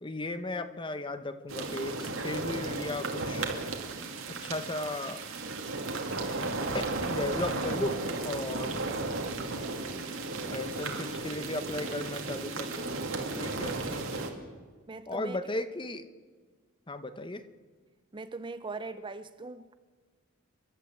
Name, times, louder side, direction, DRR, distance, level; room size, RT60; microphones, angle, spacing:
voice 1, 0.0-3.5 4.3-5.2 6.7-8.7 10.5-12.9 13.4-14.3 15.1-16.1 16.9-17.4, left 2 dB, 25° left, 0.9 m, -36 dB
sound 1, 1.5-14.3, right 3 dB, 70° right, 2.5 m, -34 dB
voice 2, 14.9-15.4 18.1-19.7, right 3 dB, 25° right, 0.5 m, -40 dB
29.0 x 12.0 x 7.8 m
head